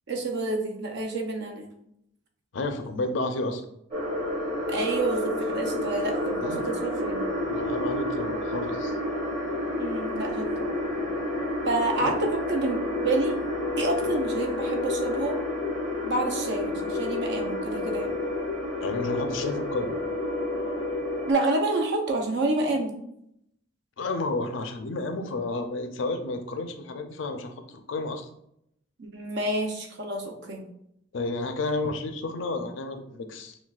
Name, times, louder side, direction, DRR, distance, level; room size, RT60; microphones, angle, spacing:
voice 1, 0.1-1.7 4.7-7.3 9.8-10.7 11.7-13.4 13.8-15.4 16.0-18.1 21.3-23.0 29.0-30.6, right 2 dB, 65° right, 2 dB, 0.7 m, -28 dB
voice 2, 2.5-3.6 6.4-6.6 7.5-9.0 12.0-12.1 18.8-19.9 24.0-28.3 31.1-33.6, left 2 dB, 70° left, 6 dB, 0.5 m, -31 dB
sound 1, 3.9-21.3, left 1 dB, 35° right, 1.4 m, -29 dB
6.0 x 2.2 x 2.4 m, 0.76 s
head